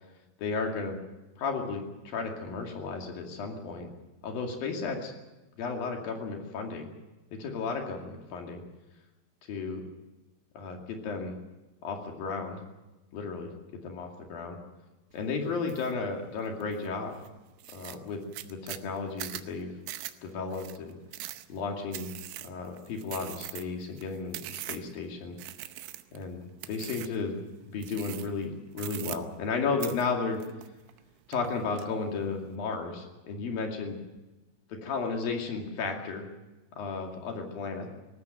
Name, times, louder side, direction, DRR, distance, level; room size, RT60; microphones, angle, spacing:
voice 1, 0.4-1.0 1.4-3.9 4.2-5.1 5.6-6.9 7.3-8.6 9.5-9.8 10.6-11.4 11.8-12.6 13.1-13.5 13.8-14.6 15.1-17.1 17.7-19.7 20.2-21.0 21.5-22.1 22.4-25.4 26.1-27.3 27.6-30.4 31.3-34.0 34.7-36.2 36.8-37.9, left 4 dB, 55° left, 2 dB, 3.7 m, -34 dB
sound 1, 15.7-15.9 16.4-16.9 17.2-17.3 17.6-25.0 25.4-26.2 26.6-27.2 27.8-28.4 28.7-29.5 29.8-31.0 31.3-31.9, right 15 dB, 75° right, 2.9 m, -41 dB
19.0 x 16.5 x 9.2 m, 1.1 s
omnidirectional pair, 5.6 m